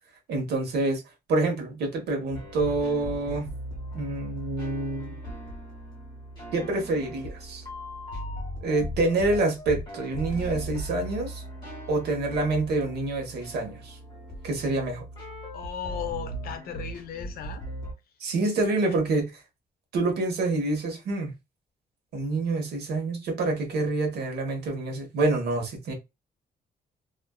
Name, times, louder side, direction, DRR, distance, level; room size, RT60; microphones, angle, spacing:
voice 1, 0.3-1.0 1.3-3.5 3.9-5.2 6.5-7.6 8.6-11.4 11.9-14.0 14.4-15.0 18.2-19.4 19.9-21.3 22.1-25.9, right 2 dB, 80° right, 0.9 m, -27 dB
sound 1, 2.3-17.9, right 1 dB, 25° left, 1.0 m, -38 dB
voice 2, 15.5-17.7 18.8-19.0, left 9 dB, 65° left, 0.5 m, -36 dB
2.4 x 2.2 x 2.3 m
cardioid pair, 165°, 17 cm